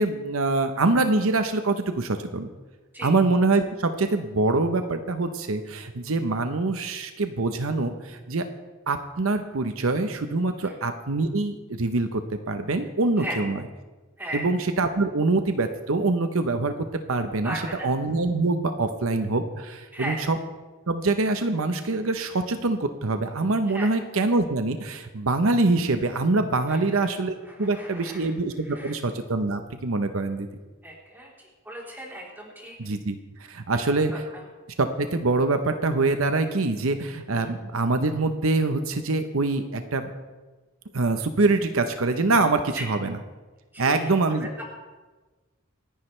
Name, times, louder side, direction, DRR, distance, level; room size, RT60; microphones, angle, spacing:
voice 1, 0.0-2.5 3.0-8.5 8.9-13.6 14.3-16.7 17.1-20.4 20.9-30.5 32.8-33.1 33.5-34.1 34.8-40.1 40.9-43.2 43.8-44.6, right 3 dB, 75° right, 8 dB, 0.9 m, -24 dB
voice 2, 14.2-14.5 17.4-17.9 19.9-20.2 23.7-23.9 26.7-26.8 27.5-28.3 28.6-29.0 30.8-32.8 34.1-34.5 37.3-37.5 42.7-42.9 43.7-44.6, right 1 dB, 10° right, -3 dB, 3.6 m, -37 dB
27.5 x 10.5 x 3.3 m, 1.2 s
head